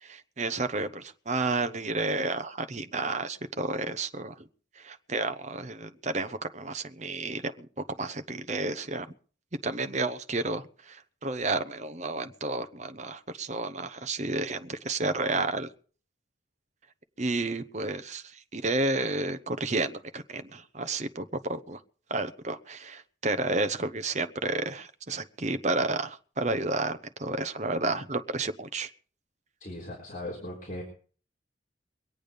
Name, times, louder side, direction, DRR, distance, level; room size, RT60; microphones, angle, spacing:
voice 1, 0.0-4.5 4.8-7.7 8.0-9.1 9.6-15.7 17.2-21.8 22.1-28.9, right 2 dB, 40° right, 10 dB, 0.9 m, -31 dB
voice 2, 29.6-30.8, left 1 dB, 45° left, -3 dB, 3.8 m, -38 dB
23.5 x 8.7 x 5.2 m, 0.43 s
head